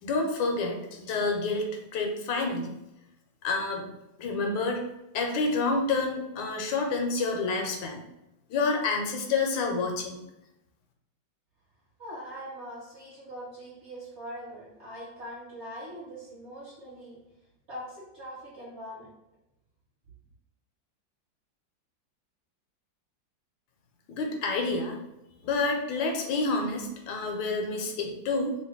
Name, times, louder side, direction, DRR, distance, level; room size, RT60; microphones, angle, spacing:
voice 1, 0.0-2.7 3.4-3.9 4.2-4.8 5.1-8.0 8.5-10.2 24.1-25.0 25.4-28.6, left 3 dB, 80° left, 2 dB, 1.3 m, -28 dB
voice 2, 12.0-17.2 17.7-19.1, equal, 40° right, -7 dB, 1.2 m, -42 dB
3.2 x 2.5 x 3.5 m, 0.92 s
omnidirectional pair, 2.1 m